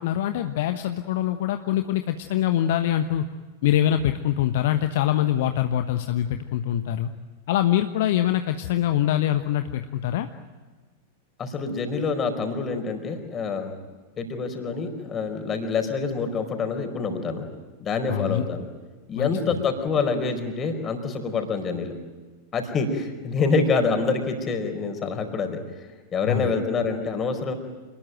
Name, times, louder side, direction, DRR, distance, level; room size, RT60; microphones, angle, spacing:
voice 1, 0.0-3.3 3.6-7.1 7.5-10.3 18.1-18.4 19.1-19.3 26.3-26.5, left 12 dB, 55° left, 8 dB, 1.2 m, -24 dB
voice 2, 11.4-13.8 14.2-17.5 17.8-18.7 19.1-21.9 22.5-25.6 26.1-27.5, left 4 dB, 25° left, 6 dB, 4.8 m, -26 dB
28.0 x 20.5 x 9.3 m, 1.4 s
figure-of-eight pair, 90°, 0 cm